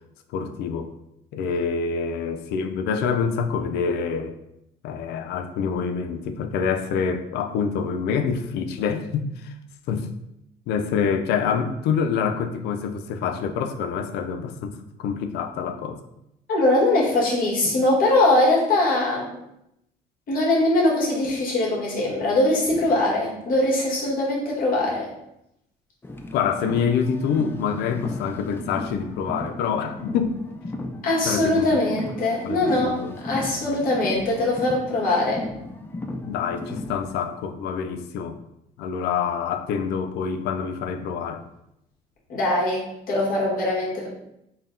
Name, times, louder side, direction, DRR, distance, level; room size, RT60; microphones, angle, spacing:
voice 1, 0.3-0.9 1.3-4.4 4.8-9.5 9.9-10.1 10.7-16.0 26.3-30.4 31.3-31.7 32.4-33.1 33.6-33.8 36.2-38.4 38.8-41.4, left 6 dB, 80° left, 8 dB, 0.4 m, -26 dB
voice 2, 16.5-19.3 20.3-25.1 31.0-32.9 33.2-35.4 42.3-44.1, left 2 dB, 60° left, -3 dB, 1.3 m, -22 dB
Car, 26.0-37.1, left 2 dB, 15° left, 0.3 m, -36 dB
3.9 x 2.1 x 3.7 m, 0.81 s
cardioid pair, 110°, 17 cm